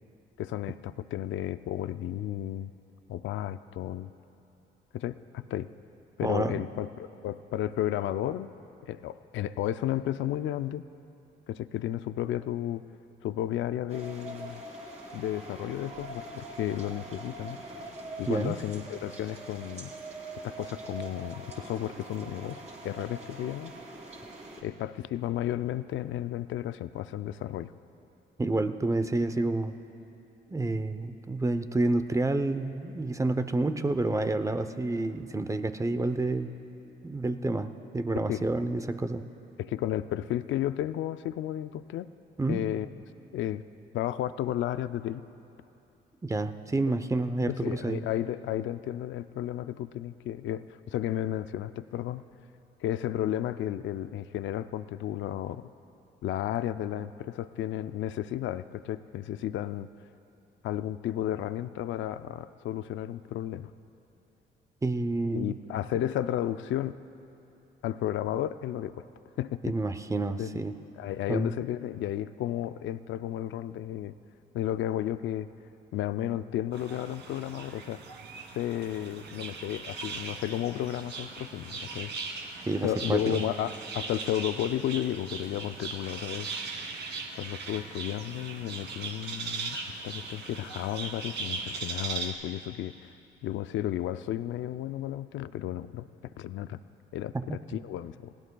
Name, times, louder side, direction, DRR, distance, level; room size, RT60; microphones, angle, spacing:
voice 1, 0.4-2.7 3.1-4.1 4.9-5.7 6.2-8.5 8.8-10.9 11.5-12.8 13.2-14.6 15.1-17.6 18.2-19.9 20.4-23.7 24.6-27.7 38.3-38.4 39.6-42.1 42.5-42.9 43.3-43.6 43.9-45.2 46.9-47.0 47.4-52.2 52.8-55.7 56.2-59.9 60.6-63.7 65.3-67.0 67.8-69.1 69.4-69.8 70.4-70.6 71.0-74.2 74.5-75.5 75.9-78.0 78.5-82.1 82.8-86.5 87.3-89.8 90.0-93.1 93.4-96.8 97.1-98.3, left 12 dB, 75° left, 13 dB, 0.4 m, -33 dB
voice 2, 6.2-6.6 18.3-18.6 28.4-29.7 30.5-36.5 37.0-39.3 42.4-42.6 46.2-48.0 64.8-65.6 69.6-70.8 71.3-71.5 82.7-83.4 97.3-97.5, right 2 dB, 15° right, 9 dB, 0.7 m, -29 dB
sound 1, 13.9-24.6, right 2 dB, 35° right, 2.9 m, -43 dB
sound 2, 76.7-92.3, right 4 dB, 65° right, 1.7 m, -39 dB
30.0 x 16.5 x 2.3 m, 2.9 s
cardioid pair, 90°, 20 cm